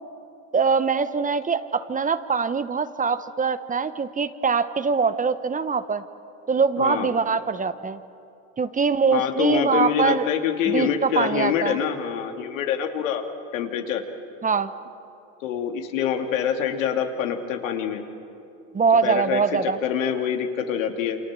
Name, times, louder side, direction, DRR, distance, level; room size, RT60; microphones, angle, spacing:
voice 1, 0.5-6.0 6.5-8.0 8.6-10.3 10.7-11.8 14.4-14.7 18.7-19.8, right 5 dB, 20° right, 12 dB, 1.0 m, -23 dB
voice 2, 6.8-7.1 9.1-13.2 13.5-14.0 15.4-18.0 19.0-21.2, left 8 dB, 80° left, 4 dB, 2.6 m, -25 dB
29.5 x 26.0 x 7.6 m, 2.7 s
hypercardioid pair, 95°, 38 cm